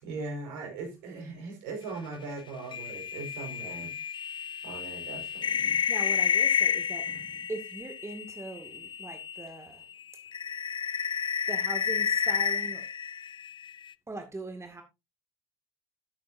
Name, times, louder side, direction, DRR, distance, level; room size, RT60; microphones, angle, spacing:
voice 1, 0.0-3.9 4.6-5.8 7.0-7.1, right 3 dB, 70° right, 5.1 m, -39 dB
sound 1, 2.7-9.6 9.9-13.9, left 7 dB, 30° left, 0.5 m, -30 dB
voice 2, 5.9-7.1 7.5-9.8 11.5-12.8 14.1-14.8, right 2 dB, 15° right, 2.2 m, -40 dB
13.0 x 8.6 x 2.7 m
hypercardioid pair, 60°, 15 cm